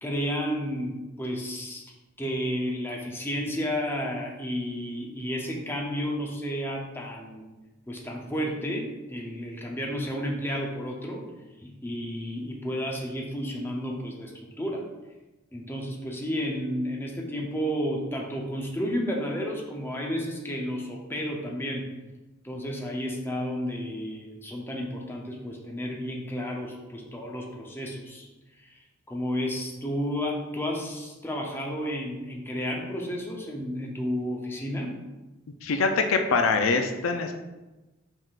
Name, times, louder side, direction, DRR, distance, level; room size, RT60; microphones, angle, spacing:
voice 1, 0.0-1.8 2.2-7.4 7.9-11.2 11.6-14.9 15.5-21.9 22.4-28.3 29.1-35.0, equal, 10° left, -1 dB, 0.6 m, -32 dB
voice 2, 35.6-37.3, left 4 dB, 75° left, 6 dB, 0.4 m, -24 dB
5.3 x 3.6 x 2.4 m, 1.1 s
head